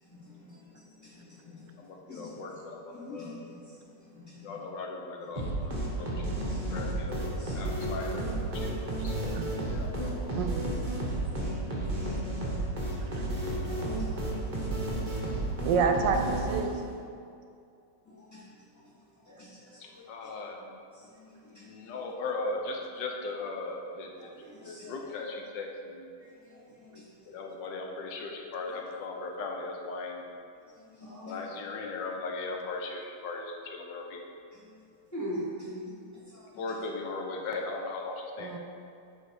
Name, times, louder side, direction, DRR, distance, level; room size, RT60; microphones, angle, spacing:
voice 1, 0.1-1.7 2.1-2.6 2.9-4.6 5.3-5.5 6.0-6.9 7.2-7.8 10.9-13.0 13.7-15.3 18.0-18.4 18.7-18.9 19.2-20.3 20.9-22.0 24.2-25.1 26.2-27.1 30.8-31.5 34.5-34.8 35.1-36.8, equal, 10° left, -8 dB, 1.6 m, -46 dB
voice 2, 1.8-3.4 4.4-5.7 6.0-6.2 6.7-9.3 9.7-10.3 20.1-20.7 21.5-24.3 24.6-26.1 27.3-30.2 31.2-34.2 36.6-38.6, left 3 dB, 80° left, 1 dB, 1.5 m, -38 dB
sound 1, 5.4-17.0, right 1 dB, 30° right, 1.2 m, -32 dB
voice 3, 10.3-10.7 13.1-13.3 15.6-16.8 38.4-38.6, right 5 dB, 80° right, 5 dB, 1.3 m, -28 dB
7.8 x 4.5 x 4.7 m, 2.4 s
omnidirectional pair, 2.0 m